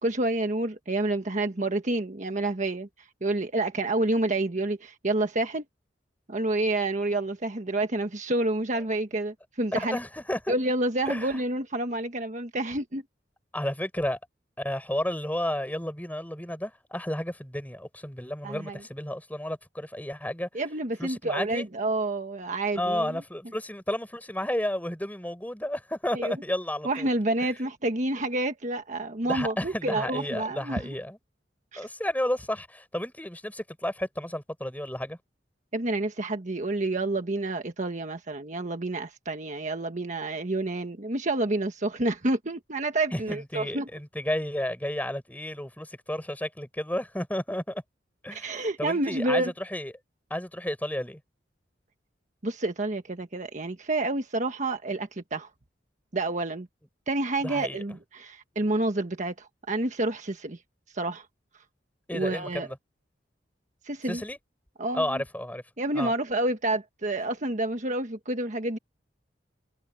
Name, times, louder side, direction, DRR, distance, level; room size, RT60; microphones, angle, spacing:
voice 1, 0.0-5.6 6.3-10.0 10.5-13.0 18.4-18.8 20.5-23.2 26.1-26.3 26.8-30.9 31.7-31.9 35.7-43.9 48.3-49.5 52.4-55.5 56.1-56.7 57.1-60.6 60.9-61.3 62.1-62.7 63.8-64.2 64.8-65.2 65.8-68.8, right 2 dB, 45° right, 1.4 m, -29 dB
voice 2, 9.9-10.5 11.1-11.3 13.5-14.2 14.6-20.5 21.0-21.7 22.8-27.1 29.2-31.2 31.8-35.2 43.1-47.8 48.2-49.9 50.3-51.2 57.4-57.8 62.1-62.8 64.1-64.4 64.9-65.6 65.9-66.1, left 1 dB, 10° left, 7.4 m, -32 dB
head